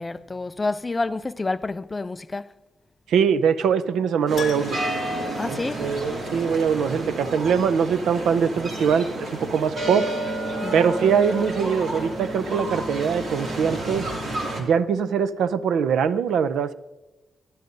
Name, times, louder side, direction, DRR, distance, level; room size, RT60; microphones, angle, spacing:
voice 1, 0.0-2.5 5.3-6.3 10.6-10.9, left 3 dB, 20° left, 0.3 m, -29 dB
voice 2, 3.1-4.8 5.5-10.1 10.7-14.1 14.6-16.7, right 7 dB, 85° right, 0.5 m, -22 dB
sound 1, 4.3-14.6, right 1 dB, 50° right, 2.4 m, -30 dB
Keyboard (musical), 4.4-6.4 6.7-6.8 9.5-9.6 9.8-9.9, left 7 dB, 55° left, 0.9 m, -39 dB
13.0 x 11.0 x 2.6 m
wide cardioid pair, 140°, 0 cm